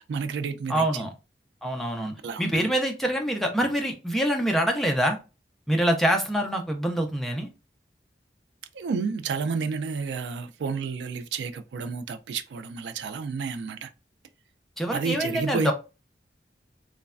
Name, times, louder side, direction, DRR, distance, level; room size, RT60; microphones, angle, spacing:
voice 1, 0.1-1.1 2.2-2.7 8.7-13.9 14.9-15.7, right 5 dB, 85° right, 0.3 m, -31 dB
voice 2, 0.7-1.1 1.6-5.2 5.7-7.5 14.8-15.7, equal, ahead, 0.4 m, -25 dB
3.1 x 2.1 x 2.3 m
head